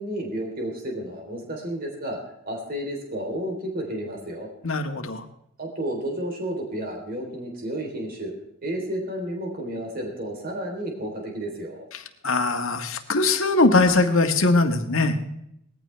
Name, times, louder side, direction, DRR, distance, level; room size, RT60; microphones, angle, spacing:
voice 1, 0.0-2.2 2.5-4.5 5.6-8.3 8.6-11.9, right 1 dB, 45° right, 0 dB, 3.6 m, -31 dB
voice 2, 4.6-5.2 12.2-15.2, left 3 dB, 70° left, 5 dB, 1.7 m, -21 dB
19.5 x 15.0 x 3.4 m, 0.76 s
head